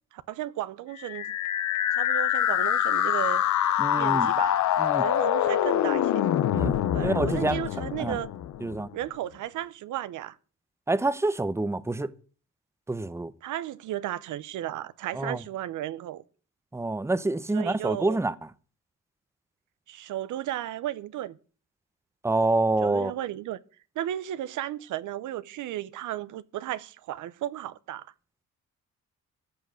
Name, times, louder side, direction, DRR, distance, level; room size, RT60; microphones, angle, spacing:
voice 1, 0.1-1.3 1.9-3.4 4.0-4.6 5.0-6.2 6.9-8.3 8.9-10.4 13.4-16.2 17.5-18.2 19.9-21.4 22.8-23.6 24.0-28.1, right 13 dB, 80° right, 0.8 m, -34 dB
sound 1, 1.0-8.9, left 11 dB, 70° left, 1.0 m, -25 dB
voice 2, 3.8-4.3 4.8-5.0 6.5-6.7 7.0-7.6 8.0-8.2 8.6-8.9 10.9-12.1 12.9-13.3 15.1-15.4 16.7-18.3 22.2-23.1, right 2 dB, 10° right, 0.8 m, -27 dB
14.5 x 6.2 x 8.9 m
cardioid pair, 90°, 30 cm